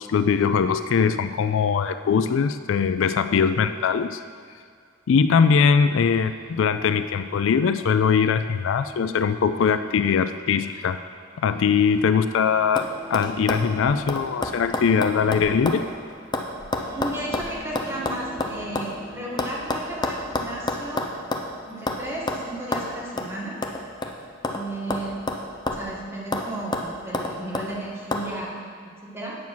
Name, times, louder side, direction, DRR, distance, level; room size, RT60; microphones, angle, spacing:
voice 1, 0.0-4.2 5.1-11.0 11.4-15.8, left 6 dB, 70° left, 11 dB, 0.4 m, -21 dB
sound 1, 5.9-19.5, right 1 dB, 45° right, 2.7 m, -45 dB
sound 2, 12.0-12.4 12.8-12.9 13.1-15.8 16.1-18.9 19.4-21.5 21.9-22.0 22.3-22.4 22.7-22.9 23.2-23.3 23.6-24.6 24.9-25.9 26.3-26.5 26.7-27.7 28.1-28.3, left 2 dB, 20° left, 0.7 m, -28 dB
voice 2, 16.9-21.1 21.7-23.6 24.5-25.2 25.7-29.4, right 1 dB, 10° right, -5 dB, 1.9 m, -34 dB
9.5 x 7.2 x 6.1 m, 2.2 s
head